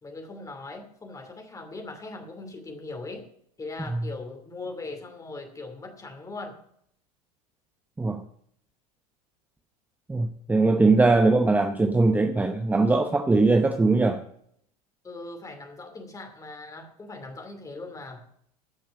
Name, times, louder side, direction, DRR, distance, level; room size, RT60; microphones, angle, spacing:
voice 1, 0.0-3.3 3.6-6.6 15.0-18.3, left 3 dB, 15° left, 2.6 m, -40 dB
voice 2, 10.1-14.2, right 3 dB, 10° right, 0.9 m, -21 dB
14.5 x 5.9 x 8.5 m
figure-of-eight pair, 80°, 20 cm